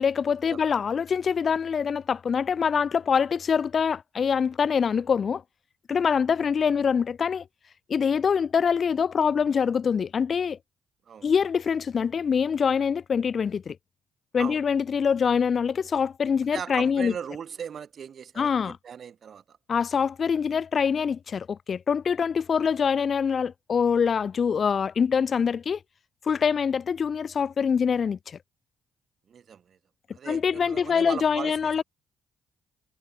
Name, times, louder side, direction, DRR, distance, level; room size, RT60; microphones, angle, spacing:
voice 1, 0.0-5.4 5.9-7.4 7.9-10.6 11.2-13.8 14.3-17.1 18.4-18.8 19.7-25.8 26.3-28.4 30.3-31.8, left 6 dB, 50° left, 0.3 m, -24 dB
voice 2, 16.5-19.6 29.3-29.8 30.1-31.8, right 7 dB, 55° right, 2.5 m, -38 dB
hypercardioid pair, 55°, 0 cm